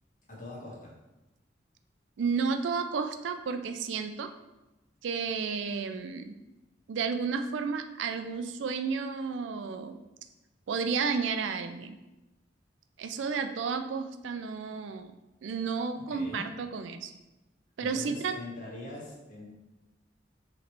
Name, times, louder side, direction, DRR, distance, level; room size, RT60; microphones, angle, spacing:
voice 1, 0.3-0.9 16.1-16.5 17.8-19.5, left 2 dB, 45° left, -5 dB, 1.4 m, -43 dB
voice 2, 2.2-4.3 5.0-6.3 6.9-10.0 10.7-12.0 13.0-15.1 15.4-17.1 17.8-18.4, right 5 dB, 85° right, 8 dB, 0.4 m, -32 dB
5.0 x 3.1 x 3.0 m, 1.0 s
head